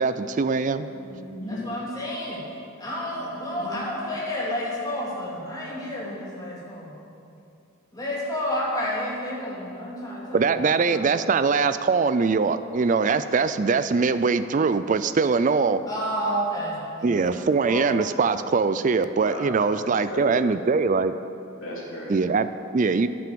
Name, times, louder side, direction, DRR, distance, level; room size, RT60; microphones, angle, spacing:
voice 1, 0.0-0.9 10.3-15.8 17.0-21.1 22.1-23.1, right 4 dB, 40° right, 12 dB, 0.4 m, -22 dB
voice 2, 0.9-1.6 3.1-3.8 19.2-20.4 21.6-22.2, equal, 80° left, -5 dB, 3.2 m, -36 dB
voice 3, 1.5-2.4 2.8-6.9 7.9-10.5 10.9-11.1 15.9-17.8, equal, 20° left, -6 dB, 2.7 m, -30 dB
10.5 x 9.3 x 6.9 m, 2.5 s
head